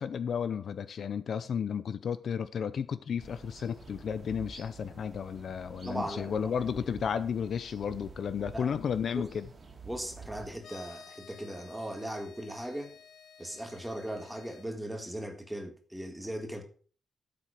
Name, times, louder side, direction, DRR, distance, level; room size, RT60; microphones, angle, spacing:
voice 1, 0.0-9.5, left 7 dB, 50° left, 0.6 m, -33 dB
sound 1, 3.2-10.6, right 4 dB, 30° right, 2.6 m, -49 dB
voice 2, 5.8-6.6 8.5-8.7 9.2-9.3 9.8-12.9 13.4-16.6, right 1 dB, 5° right, 1.7 m, -38 dB
sound 2, 10.6-14.7, left 7 dB, 75° left, 1.3 m, -53 dB
13.0 x 7.5 x 5.0 m
wide cardioid pair, 180°, 0 cm